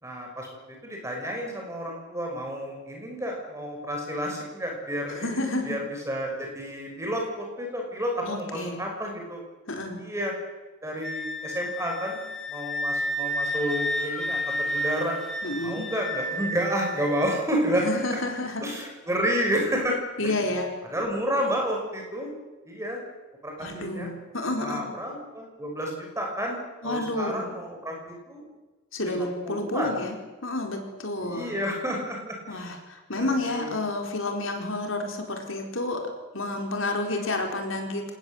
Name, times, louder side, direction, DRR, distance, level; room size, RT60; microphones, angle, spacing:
voice 1, 0.0-9.4 10.0-10.3 10.8-12.2 12.5-15.2 15.6-17.9 18.6-20.3 20.9-22.3 22.6-23.0 23.4-24.1 24.6-26.6 26.8-28.4 29.0-30.0 31.2-32.7 33.1-33.8 37.1-37.2, equal, 15° right, 1 dB, 5.9 m, -30 dB
voice 2, 5.1-5.8 8.2-8.8 9.7-10.0 15.4-15.9 17.8-18.7 20.2-20.7 23.6-24.8 26.8-27.5 28.9-30.2 30.4-31.6 32.5-36.1 36.3-38.1, left 2 dB, 65° left, 3 dB, 4.5 m, -30 dB
Wind instrument woodwind instrument, 11.0-17.4, equal, ahead, 2.8 m, -31 dB
26.0 x 19.5 x 8.0 m, 1.2 s
head